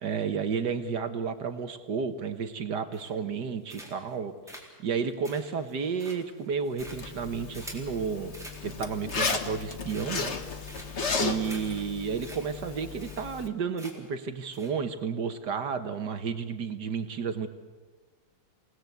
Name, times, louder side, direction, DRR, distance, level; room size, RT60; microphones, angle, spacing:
voice 1, 0.0-8.4 8.6-10.3 10.7-10.9 11.2-17.5, right 6 dB, 60° right, 9 dB, 1.8 m, -32 dB
sound 1, 2.9-3.3 3.7-4.1 4.5-7.9 8.3-8.6 9.0-9.5 9.9-10.3 10.7-11.1 11.4-11.6 11.9-12.0 12.2-12.4 12.7-12.8 13.0-13.5 13.8-14.1 14.5-14.7, right 1 dB, ahead, 4.1 m, -46 dB
Zipper (clothing), 6.8-13.5, left 4 dB, 35° left, 1.5 m, -34 dB
27.5 x 18.5 x 8.1 m, 1.3 s
omnidirectional pair, 2.2 m